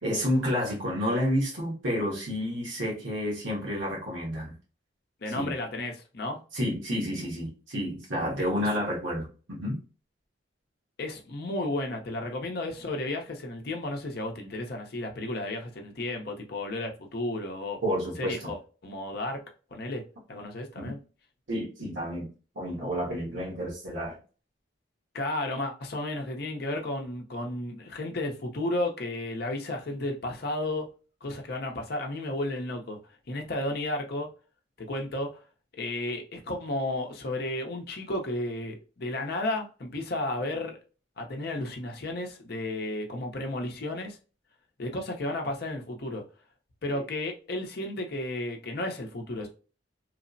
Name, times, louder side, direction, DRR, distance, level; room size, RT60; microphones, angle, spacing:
voice 1, 0.0-4.5 5.3-5.5 6.5-9.8 17.8-18.5 20.7-20.9 21.5-24.2 46.9-47.0, equal, 85° right, 1.2 m, -30 dB
voice 2, 5.2-6.4 11.0-17.8 18.2-19.4 19.7-20.0 20.3-21.0 25.1-30.9 31.2-33.0 33.3-34.3 34.8-35.4 35.7-40.8 41.2-44.2 44.8-46.2 46.8-49.5, left 1 dB, 55° left, 0.6 m, -33 dB
3.1 x 2.0 x 2.5 m
head